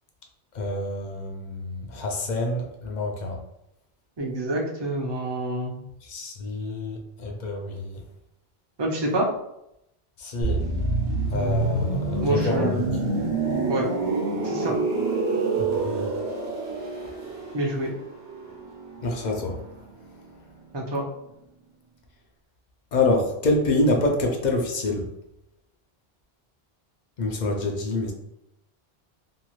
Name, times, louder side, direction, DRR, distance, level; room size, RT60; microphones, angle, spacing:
voice 1, 0.5-3.3 6.1-8.0 10.2-10.6 11.3-12.9 15.5-16.0 19.0-19.5 22.9-25.0 27.2-28.1, left 2 dB, 55° left, 1 dB, 0.6 m, -26 dB
voice 2, 4.2-5.8 8.8-9.3 12.2-12.9 13.7-13.9 14.4-14.8 17.5-17.9 20.7-21.0, right 1 dB, 35° right, -1 dB, 0.5 m, -27 dB
sound 1, 10.4-20.1 20.3-20.6, right 3 dB, 75° right, 1.0 m, -27 dB
2.7 x 2.3 x 3.0 m, 0.81 s
omnidirectional pair, 1.1 m